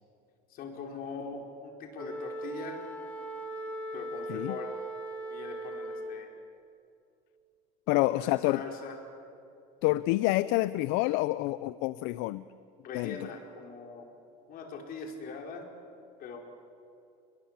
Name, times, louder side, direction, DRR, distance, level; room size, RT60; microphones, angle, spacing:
voice 1, 0.5-2.8 3.9-4.7 5.3-6.3 7.9-9.0 12.8-14.1 14.5-15.6 16.2-16.4, left 4 dB, 50° left, 2 dB, 4.7 m, -41 dB
Wind instrument woodwind instrument, 1.9-6.3, right 1 dB, 5° left, 2.5 m, -39 dB
voice 2, 7.9-8.6 9.8-12.4 12.9-13.2, left 18 dB, 70° left, 16 dB, 0.6 m, -28 dB
29.5 x 21.0 x 7.4 m, 2.6 s
cardioid pair, 130°, 19 cm